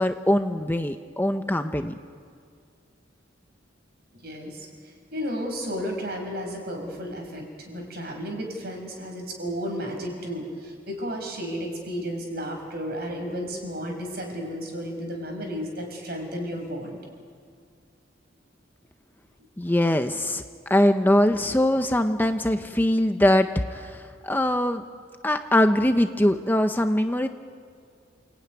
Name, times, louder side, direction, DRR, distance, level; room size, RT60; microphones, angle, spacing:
voice 1, 0.0-1.9 19.6-24.8 25.2-27.3, left 1 dB, 10° left, 7 dB, 0.7 m, -22 dB
voice 2, 4.1-17.0, equal, 55° right, 2 dB, 5.9 m, -33 dB
28.5 x 16.5 x 9.6 m, 2.2 s
head